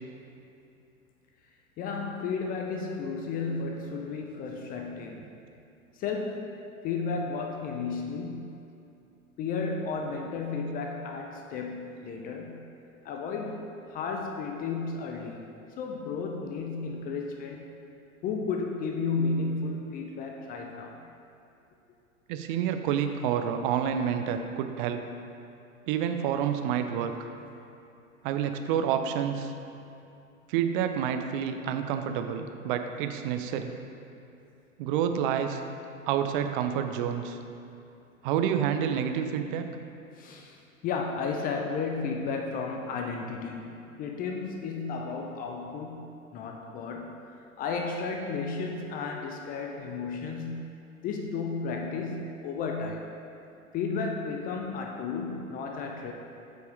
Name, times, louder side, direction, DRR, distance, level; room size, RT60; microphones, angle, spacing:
voice 1, 1.8-5.3 6.0-6.6 6.8-8.6 9.4-12.7 13.0-15.5 15.8-17.7 18.2-21.0 40.2-50.7 51.0-53.1 53.7-56.1, left 4 dB, 20° left, 2 dB, 0.5 m, -33 dB
voice 2, 22.3-25.0 25.9-27.1 28.2-29.5 30.5-33.7 34.8-35.6 36.1-37.4 38.2-39.7, right 8 dB, 40° right, 7 dB, 0.6 m, -28 dB
7.7 x 5.6 x 4.8 m, 2.7 s
figure-of-eight pair, 95°, 42 cm